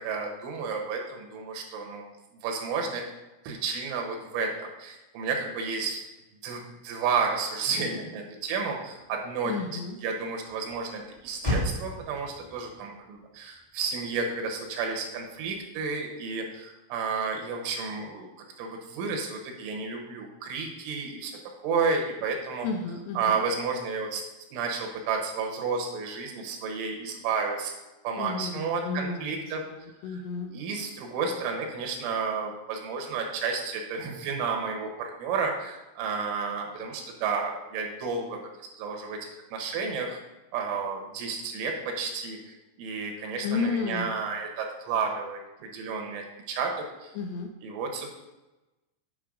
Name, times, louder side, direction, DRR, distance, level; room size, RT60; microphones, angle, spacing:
voice 1, 0.0-2.1 2.4-3.0 3.5-6.0 6.4-18.3 18.6-22.7 23.2-24.2 24.5-27.7 28.0-29.6 30.1-30.2 30.5-40.2 40.5-46.7 47.0-47.1 47.6-48.1, right 5 dB, 90° right, 2 dB, 3.7 m, -31 dB
Motor vehicle (road), 8.4-16.0, left 1 dB, 20° left, 1.6 m, -38 dB
voice 2, 9.5-10.0 22.6-23.4 28.2-30.5 43.4-44.2 47.2-47.5, left 4 dB, 80° left, 5 dB, 2.6 m, -32 dB
10.0 x 5.4 x 3.8 m, 1.0 s
omnidirectional pair, 5.4 m